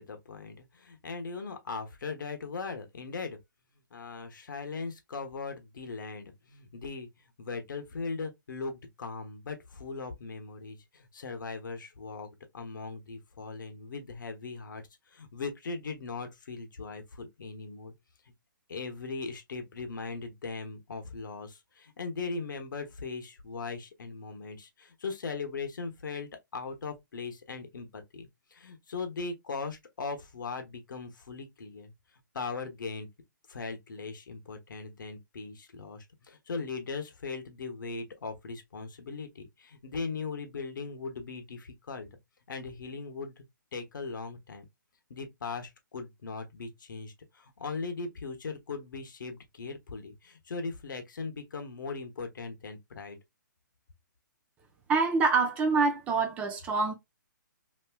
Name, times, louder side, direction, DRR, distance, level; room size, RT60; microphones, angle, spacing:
voice 1, 0.0-3.4 3.9-17.9 18.7-31.9 32.3-33.1 33.5-42.1 42.5-43.4 43.7-44.7 45.1-53.2, left 4 dB, 70° left, 0.8 m, -39 dB
voice 2, 54.9-56.9, right 4 dB, 10° right, 0.5 m, -26 dB
3.3 x 2.6 x 2.2 m
hypercardioid pair, 160°, 11 cm